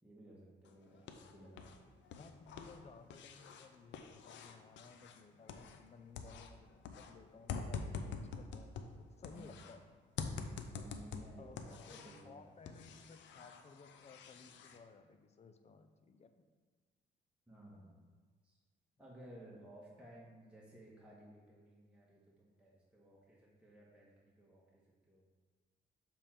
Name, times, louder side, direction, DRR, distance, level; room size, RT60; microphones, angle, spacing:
voice 1, 0.0-1.8 9.3-9.6 10.7-12.4 17.5-18.0 18.4-18.6 19.0-25.2, right 1 dB, 5° right, -5 dB, 1.4 m, -57 dB
sound 1, 0.6-1.8 2.0-5.9 6.1-9.8 10.2-12.3 12.7-14.8, left 5 dB, 80° left, 0.6 m, -46 dB
voice 2, 2.2-9.9 11.4-16.4, left 4 dB, 35° left, 8 dB, 0.6 m, -58 dB
6.9 x 3.7 x 4.4 m, 1.5 s
cardioid pair, 90°, 19 cm